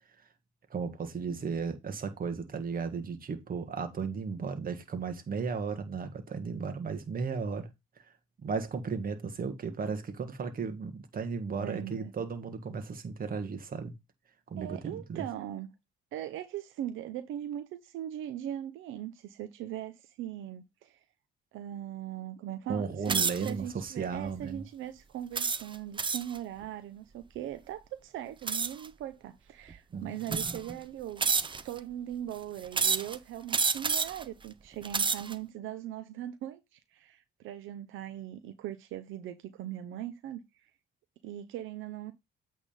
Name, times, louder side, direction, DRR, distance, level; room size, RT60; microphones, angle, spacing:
voice 1, 0.7-7.7 8.4-13.9 14.5-15.2 22.7-24.6 29.9-30.1, right 5 dB, 45° right, 1.6 m, -35 dB
voice 2, 11.6-12.1 14.6-15.7 16.1-21.0 21.5-40.4 41.2-42.1, right 11 dB, 85° right, 0.7 m, -40 dB
sound 1, 23.1-23.5 24.2-24.4 25.3-26.4 28.5-28.9 29.7-29.8 30.3-30.7 31.2-31.8 32.7-33.2 33.5-34.2 34.7-35.3, right 5 dB, 25° right, 0.6 m, -29 dB
8.4 x 3.6 x 5.0 m
cardioid pair, 90°, 20 cm